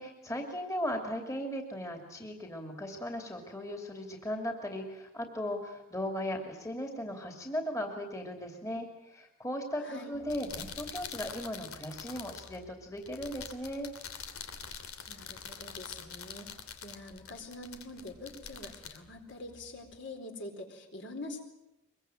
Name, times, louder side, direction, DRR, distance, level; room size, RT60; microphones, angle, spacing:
voice 1, 0.0-13.9, equal, 15° left, 3 dB, 2.8 m, -37 dB
voice 2, 9.8-10.1 15.1-21.4, left 2 dB, 55° left, 4 dB, 4.3 m, -45 dB
sound 1, 10.1-20.0, left 7 dB, 90° left, 2.7 m, -46 dB
24.0 x 22.5 x 9.1 m, 0.89 s
head